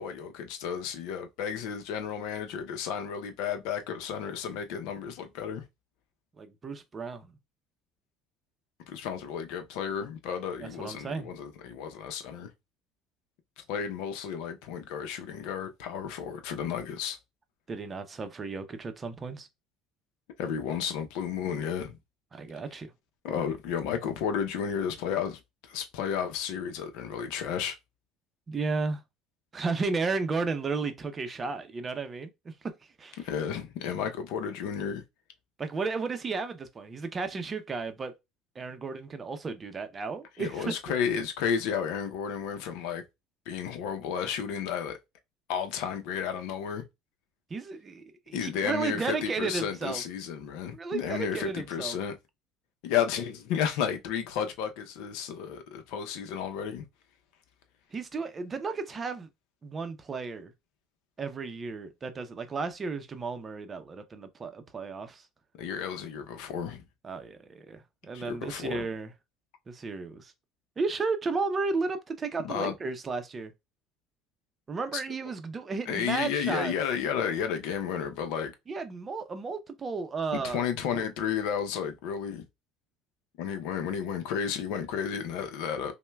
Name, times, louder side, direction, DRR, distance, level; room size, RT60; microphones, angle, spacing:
voice 1, 0.0-5.6 8.9-12.5 13.6-17.2 20.4-22.0 23.2-25.4 25.7-27.8 33.2-35.0 40.4-43.0 43.5-45.0 45.5-46.8 48.3-52.2 52.8-56.8 65.6-66.8 68.1-68.8 72.4-72.7 75.9-78.5 80.3-82.4 83.4-85.9, left 7 dB, 80° left, 0.6 m, -32 dB
voice 2, 6.4-7.3 10.6-11.3 17.7-19.5 22.3-22.9 28.5-29.0 29.5-32.7 33.0-33.2 35.6-38.1 38.6-40.7 47.5-50.0 50.7-52.0 57.9-59.3 59.6-60.5 61.2-65.2 67.0-69.1 69.7-70.3 70.8-73.5 74.7-76.7 78.7-80.6, right 4 dB, 25° right, 0.6 m, -33 dB
5.4 x 2.1 x 2.3 m
cardioid pair, 115°, 0 cm